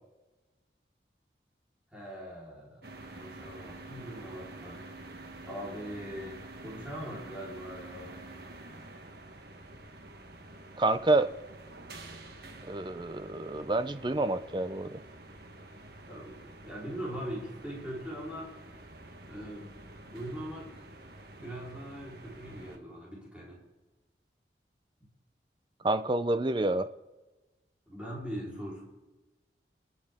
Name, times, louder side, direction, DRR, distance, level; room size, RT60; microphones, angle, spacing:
voice 1, 1.9-4.8 5.5-8.2 16.1-18.5 19.3-20.9 21.4-23.6 27.9-28.8, equal, 5° right, -6 dB, 4.1 m, -41 dB
sound 1, 2.8-22.8, right 2 dB, 60° right, 1.3 m, -48 dB
voice 2, 10.8-11.3 12.6-15.0 25.8-26.9, right 2 dB, 25° right, 11 dB, 0.6 m, -28 dB
28.0 x 9.4 x 3.7 m, 1.1 s
head